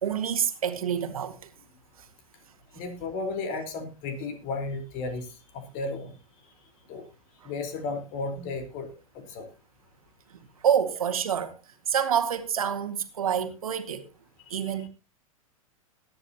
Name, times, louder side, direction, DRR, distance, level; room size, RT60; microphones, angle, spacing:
voice 1, 0.0-1.4 7.4-7.5 10.3-11.5 11.9-14.0 14.5-14.9, right 8 dB, 75° right, 2.0 m, -27 dB
voice 2, 2.7-6.1 6.9-7.0 7.4-9.5 14.5-14.7, left 3 dB, 45° left, 4.2 m, -34 dB
20.5 x 10.0 x 2.9 m
hypercardioid pair, 105°, 18 cm